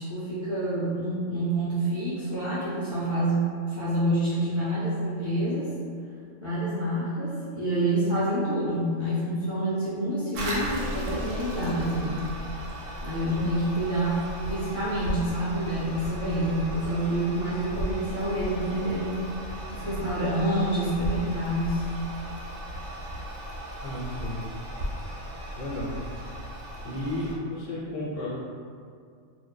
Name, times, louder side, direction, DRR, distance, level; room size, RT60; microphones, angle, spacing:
voice 1, 0.0-3.5 3.8-5.7 6.4-12.2 13.0-14.2 14.5-19.2 19.7-21.8, right 1 dB, 50° right, -11 dB, 0.3 m, -27 dB
Toilet flush, 10.3-27.4, equal, 80° right, 0.9 m, -36 dB
voice 2, 23.8-24.4 25.6-25.9 26.8-28.3, left 1 dB, 80° left, -10 dB, 1.3 m, -33 dB
2.6 x 2.4 x 2.2 m, 2.2 s
omnidirectional pair, 1.3 m